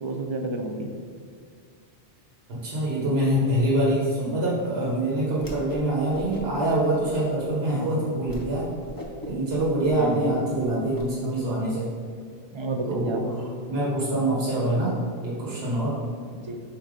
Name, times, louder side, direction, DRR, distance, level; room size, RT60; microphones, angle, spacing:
voice 1, 0.0-0.9 7.7-8.0 10.0-10.3 12.5-13.2 16.3-16.6, right 2 dB, 40° right, 3 dB, 0.4 m, -30 dB
voice 2, 2.5-8.7 9.2-11.9 12.9-13.4 13.7-14.9 15.2-16.0, right 1 dB, 75° right, -5 dB, 1.4 m, -25 dB
Whoosh swoosh swish, 5.4-5.9 6.1-6.6 7.0-7.5 7.9-8.0 8.3-8.5 8.8-11.0, left 1 dB, 25° left, 0.6 m, -39 dB
7.2 x 2.8 x 5.1 m, 2.2 s
omnidirectional pair, 1.0 m